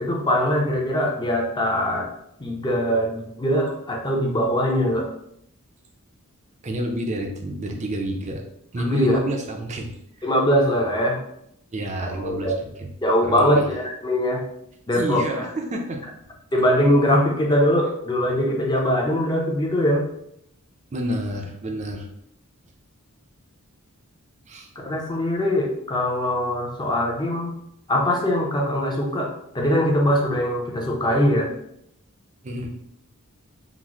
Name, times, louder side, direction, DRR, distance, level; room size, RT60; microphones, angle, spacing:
voice 1, 0.0-2.1 2.4-5.1 8.8-9.2 10.2-11.2 12.2-12.6 13.0-14.4 14.9-15.5 16.5-20.1 24.8-27.5 27.9-31.5, equal, 20° left, -1 dB, 0.6 m, -22 dB
voice 2, 6.6-8.4 8.7-9.9 11.7-12.5 12.8-12.9 13.2-13.7 14.9-16.0 20.9-22.1 24.5-24.7 32.4-32.7, right 1 dB, 35° right, 3 dB, 0.5 m, -29 dB
3.8 x 2.0 x 3.0 m, 0.75 s
head